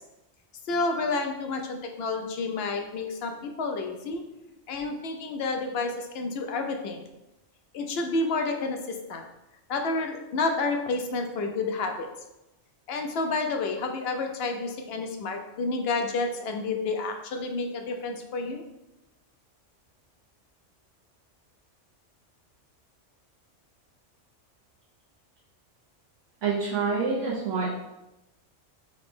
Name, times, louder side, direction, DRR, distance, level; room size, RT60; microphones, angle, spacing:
voice 1, 0.7-4.2 4.7-7.1 7.7-9.2 9.7-12.1 12.9-18.6, left 3 dB, 65° left, 4 dB, 0.7 m, -30 dB
voice 2, 26.4-27.7, right 4 dB, 85° right, -7 dB, 1.2 m, -27 dB
3.9 x 2.9 x 3.6 m, 0.94 s
omnidirectional pair, 1.2 m